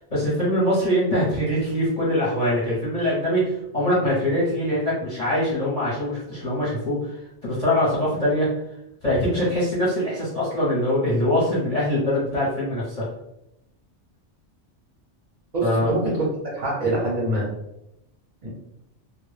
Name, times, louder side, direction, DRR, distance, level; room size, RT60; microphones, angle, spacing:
voice 1, 0.1-8.5 9.0-13.1 15.6-15.9, left 1 dB, 35° left, -8 dB, 0.7 m, -23 dB
voice 2, 15.5-17.5 18.4-18.5, right 1 dB, 45° right, -6 dB, 0.6 m, -25 dB
2.1 x 2.0 x 3.1 m, 0.84 s
omnidirectional pair, 1.2 m